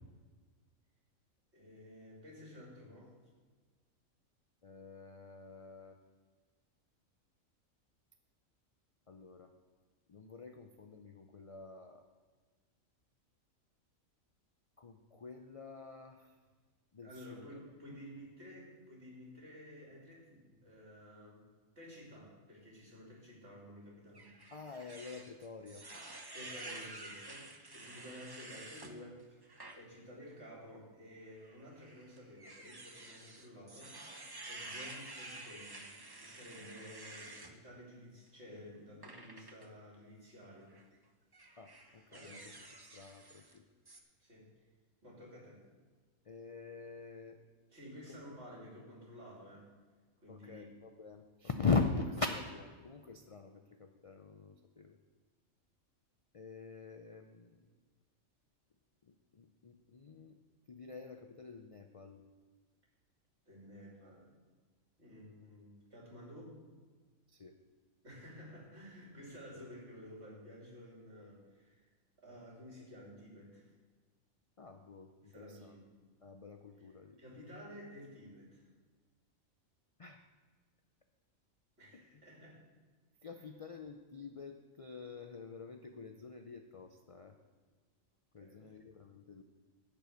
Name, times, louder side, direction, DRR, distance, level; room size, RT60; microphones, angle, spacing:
voice 1, 1.5-3.1 17.0-21.4 21.7-24.3 26.3-29.4 29.7-34.2 34.5-35.9 36.2-40.8 42.1-42.5 44.2-44.5 45.0-45.6 47.7-49.7 50.2-50.7 63.4-64.3 65.0-66.6 68.0-71.9 72.2-73.7 75.2-75.9 76.8-78.7 81.8-82.6 83.3-83.4 88.4-88.8, equal, 50° right, -4 dB, 3.3 m, -53 dB
voice 2, 4.6-6.0 9.1-9.5 10.1-12.1 14.8-16.3 16.9-17.5 24.5-25.8 41.6-42.4 42.9-43.6 46.3-47.4 48.1-48.2 50.3-55.0 56.3-57.5 59.1-60.4 60.7-62.2 67.3-67.6 69.5-69.6 74.6-75.7 76.2-77.2 80.0-80.2 81.9-82.2 83.2-87.4 88.3-89.4, left 4 dB, 50° left, 5 dB, 0.4 m, -42 dB
sound 1, 24.1-28.9 29.4-29.8 30.2-30.3 31.4-37.5 39.0-39.7 40.6-40.9 41.3-43.6 43.9-44.0, right 2 dB, 20° right, 0.7 m, -50 dB
11.0 x 5.3 x 8.0 m, 1.4 s
omnidirectional pair, 1.4 m